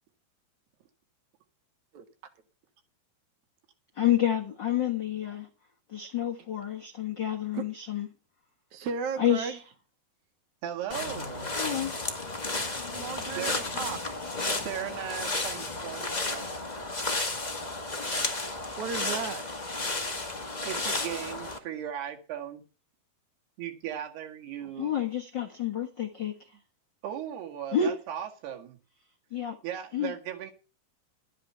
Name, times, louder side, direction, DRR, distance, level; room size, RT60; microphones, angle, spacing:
voice 1, 4.0-5.5 5.9-8.1 9.2-9.6 11.6-12.0 24.8-26.3 27.7-27.9 29.3-29.6 29.9-30.1, left 9 dB, 60° left, 1.1 m, -29 dB
voice 2, 8.7-9.6 12.9-14.2 18.8-19.4 24.6-24.7, right 5 dB, 60° right, 2.4 m, -35 dB
voice 3, 10.6-11.5 13.4-13.5 14.5-16.5 20.6-22.6 23.6-24.9 27.0-28.8 29.6-30.5, right 10 dB, 80° right, 4.0 m, -37 dB
sound 1, 10.9-21.6, left 2 dB, 45° left, 0.5 m, -33 dB
13.0 x 10.5 x 5.7 m
omnidirectional pair, 4.6 m